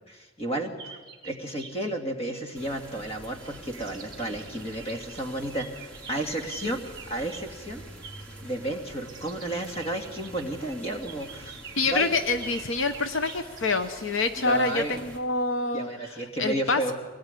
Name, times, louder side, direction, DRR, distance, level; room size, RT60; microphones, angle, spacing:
voice 1, 0.1-1.0 1.2-6.8 7.1-7.8 8.4-12.1 14.4-15.0 15.7-16.9, right 1 dB, 30° left, 4 dB, 2.4 m, -32 dB
sound 1, 0.8-1.8 2.2-3.4 3.6-16.1, right 6 dB, 20° right, 2.6 m, -47 dB
sound 2, 2.5-15.2, right 1 dB, 5° left, 3.4 m, -47 dB
voice 2, 11.8-15.9 16.4-16.9, left 3 dB, 70° left, 9 dB, 1.0 m, -26 dB
23.5 x 18.5 x 9.8 m, 1.3 s
head